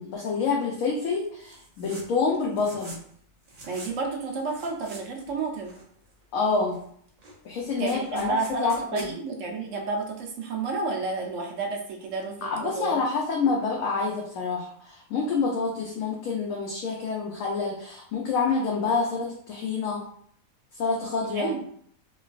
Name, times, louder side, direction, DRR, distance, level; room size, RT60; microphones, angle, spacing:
voice 1, 0.0-3.0 6.3-6.8 7.4-9.1 12.4-20.0 20.8-21.5, left 4 dB, 75° left, -2 dB, 0.9 m, -27 dB
sound 1, 1.4-2.1 2.3-3.1 3.4-3.9 4.4-5.3 5.6-6.2 6.7-6.8 7.1-9.1, right 2 dB, 50° right, 0.4 m, -45 dB
voice 2, 3.7-5.7 7.8-13.0 21.3-21.6, right 4 dB, 70° right, 1 dB, 0.9 m, -31 dB
3.1 x 2.3 x 2.4 m, 0.63 s
omnidirectional pair, 1.5 m